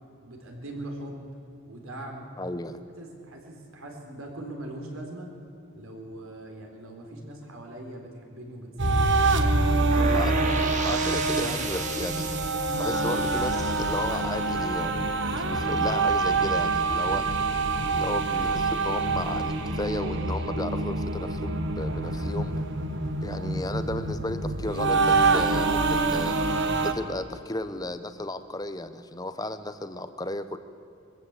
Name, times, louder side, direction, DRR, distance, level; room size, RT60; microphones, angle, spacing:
voice 1, 0.2-1.3 1.7-2.3 3.0-5.3 5.7-9.3 9.6-10.1, right 1 dB, 70° right, 2 dB, 4.0 m, -41 dB
voice 2, 2.4-2.8 10.1-10.3 10.8-17.3 17.9-22.5 23.2-26.4 26.8-30.6, left 1 dB, 15° left, 11 dB, 0.9 m, -34 dB
sound 1, 8.8-26.9, right 3 dB, 55° right, 1.3 m, -26 dB
sound 2, 9.9-15.8, right 4 dB, 35° right, 1.7 m, -35 dB
22.5 x 15.0 x 8.2 m, 2.8 s
head